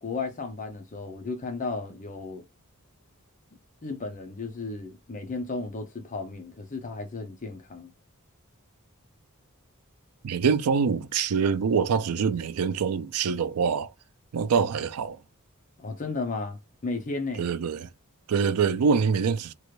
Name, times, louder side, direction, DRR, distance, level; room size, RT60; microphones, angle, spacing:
voice 1, 0.0-2.5 3.8-7.9 15.8-16.6 16.8-17.5, left 3 dB, 35° left, 0.6 m, -34 dB
voice 2, 10.2-13.9 14.3-15.2 17.4-17.9 18.3-19.5, right 6 dB, 80° right, 0.4 m, -25 dB
3.0 x 2.5 x 3.1 m
head